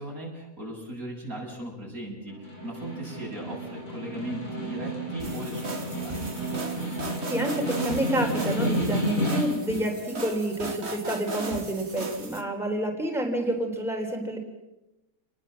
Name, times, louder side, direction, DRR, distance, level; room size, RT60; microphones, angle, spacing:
voice 1, 0.0-6.2, right 1 dB, 80° right, -1 dB, 8.1 m, -38 dB
Snare drum, 2.3-9.8, right 1 dB, 70° left, 7.4 m, -31 dB
sound 1, 5.2-12.4, right 3 dB, 50° right, 2.4 m, -37 dB
voice 2, 7.3-14.4, right 1 dB, ahead, 1 dB, 3.7 m, -28 dB
28.0 x 20.5 x 7.6 m, 0.99 s
omnidirectional pair, 1.5 m